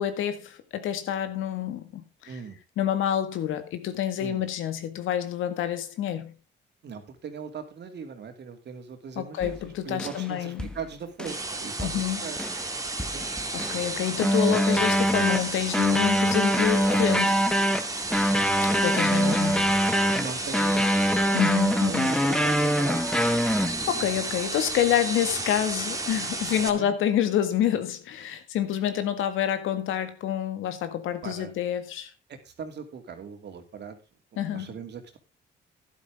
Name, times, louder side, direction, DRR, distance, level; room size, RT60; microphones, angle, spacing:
voice 1, 0.0-2.4 2.8-6.3 9.2-10.7 11.8-12.2 13.5-17.5 18.8-19.7 21.3-22.1 23.9-32.1 34.4-34.7, left 10 dB, 85° left, 1.8 m, -28 dB
voice 2, 2.3-2.6 4.2-4.4 6.8-12.4 13.0-13.3 19.0-19.4 20.1-20.9 21.3-21.6 21.8-23.0 26.7-26.9 31.2-31.5 32.3-34.0 34.5-35.2, right 6 dB, 60° right, 2.8 m, -39 dB
sound 1, 9.4-9.6 10.0-10.3 10.6-10.8 11.2-11.5 11.8-12.0 12.4-12.7 13.0-13.9 14.2-24.0, equal, 5° left, 1.3 m, -24 dB
sound 2, 11.3-26.7, right 2 dB, 15° right, 2.2 m, -33 dB
12.0 x 11.0 x 3.6 m
cardioid pair, 90°, 20 cm